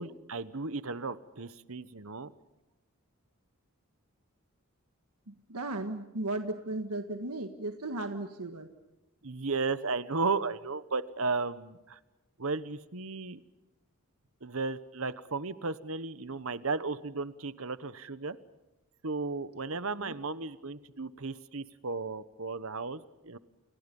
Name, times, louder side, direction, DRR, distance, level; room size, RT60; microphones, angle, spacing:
voice 1, 0.0-2.3 9.2-12.0 12.4-13.4 14.4-18.4 19.0-23.4, right 4 dB, 65° right, 14 dB, 1.1 m, -34 dB
voice 2, 5.3-8.7 19.7-20.2, right 2 dB, 85° right, 6 dB, 1.7 m, -36 dB
29.5 x 29.5 x 5.5 m, 1.0 s
head